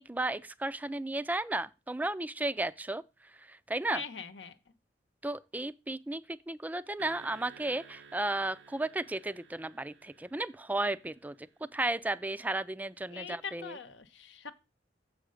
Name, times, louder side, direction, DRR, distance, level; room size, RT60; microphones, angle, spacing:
voice 1, 0.0-3.0 3.3-4.0 5.2-11.4 11.6-13.8, right 2 dB, 10° right, 0.3 m, -34 dB
voice 2, 3.9-4.6 13.1-14.5, left 5 dB, 85° left, 0.9 m, -42 dB
sound 1, 7.0-11.5, right 5 dB, 75° right, 0.7 m, -55 dB
7.6 x 5.0 x 6.3 m
head